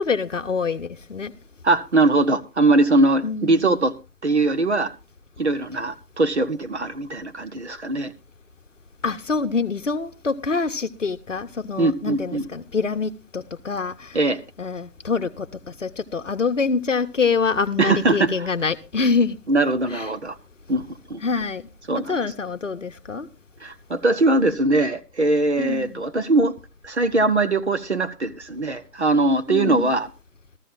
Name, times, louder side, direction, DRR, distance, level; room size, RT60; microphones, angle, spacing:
voice 1, 0.0-1.3 3.2-3.8 9.0-14.2 14.6-19.4 19.9-20.1 21.2-21.7 21.9-23.3 25.6-26.0 29.5-29.9, left 4 dB, 50° left, 10 dB, 0.9 m, -25 dB
voice 2, 1.6-3.9 4.2-4.9 5.4-8.1 11.8-12.5 14.1-14.4 17.8-18.5 19.5-20.4 20.7-21.2 21.9-22.2 23.6-26.5 26.8-30.1, right 2 dB, 45° right, 10 dB, 0.9 m, -21 dB
15.5 x 14.0 x 2.5 m, 0.28 s
figure-of-eight pair, 155°, 47 cm